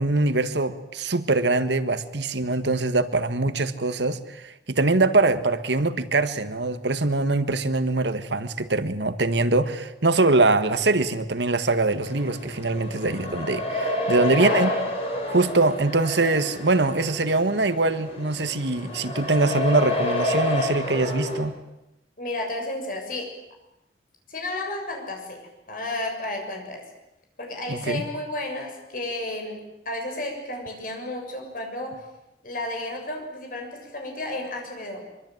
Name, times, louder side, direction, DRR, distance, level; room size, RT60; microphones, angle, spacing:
voice 1, 0.0-14.7 15.3-21.5 27.7-28.0, right 2 dB, 85° right, 11 dB, 1.7 m, -23 dB
sound 1, 12.0-21.4, left 2 dB, 35° left, 6.7 m, -29 dB
voice 2, 14.3-14.8 22.2-23.3 24.3-26.8 27.4-32.1 32.4-35.0, left 1 dB, 50° left, 2 dB, 7.3 m, -32 dB
24.5 x 24.0 x 9.3 m, 0.92 s
head